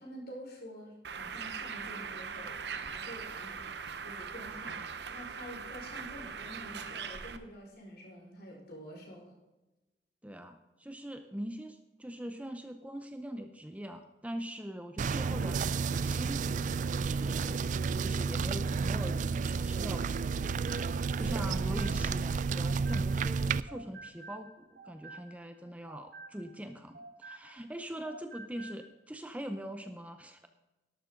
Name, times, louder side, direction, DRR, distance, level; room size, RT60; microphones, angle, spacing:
voice 1, 0.0-9.4 21.2-21.8, equal, 60° left, -2 dB, 5.4 m, -48 dB
Bird, 1.0-7.4, right 6 dB, 70° right, 0.9 m, -41 dB
voice 2, 10.2-20.6 21.2-30.5, equal, 10° right, 7 dB, 0.7 m, -42 dB
sound 1, 15.0-23.6, right 5 dB, 45° right, 0.3 m, -31 dB
sound 2, 20.4-23.4 23.7-27.8 28.0-28.9, right 3 dB, 90° right, 4.9 m, -51 dB
13.0 x 12.0 x 3.8 m, 1.1 s
head